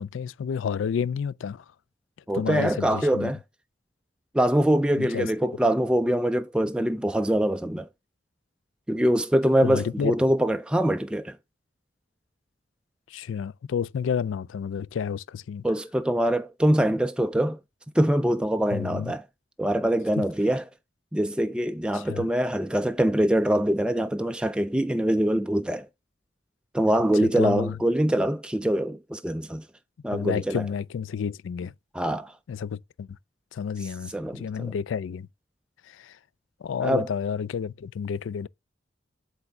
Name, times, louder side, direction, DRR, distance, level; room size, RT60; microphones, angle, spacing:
voice 1, 0.0-1.6 2.3-3.3 5.0-5.5 9.6-10.1 13.1-15.6 18.7-19.1 20.2-20.3 21.9-22.3 27.2-27.8 30.1-31.7 32.5-33.1 33.5-35.3 35.9-36.2 36.6-38.5, left 7 dB, 90° left, 0.3 m, -30 dB
voice 2, 2.3-3.4 4.3-7.9 8.9-11.4 15.6-17.6 17.9-19.2 19.6-20.6 21.1-25.9 26.7-29.7 30.0-30.6 31.9-32.3 33.8-34.7 36.8-37.1, right 1 dB, 5° right, 0.3 m, -24 dB
7.9 x 3.5 x 5.8 m
head